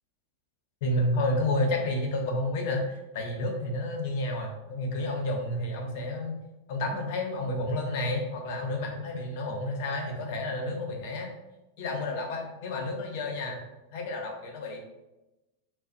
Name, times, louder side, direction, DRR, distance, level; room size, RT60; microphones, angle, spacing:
voice 1, 0.8-6.4 6.7-11.3 11.8-13.6 13.9-14.8, left 1 dB, 60° left, 2 dB, 0.6 m, -30 dB
2.5 x 2.0 x 2.5 m, 1.0 s
supercardioid pair, 130°, 0 cm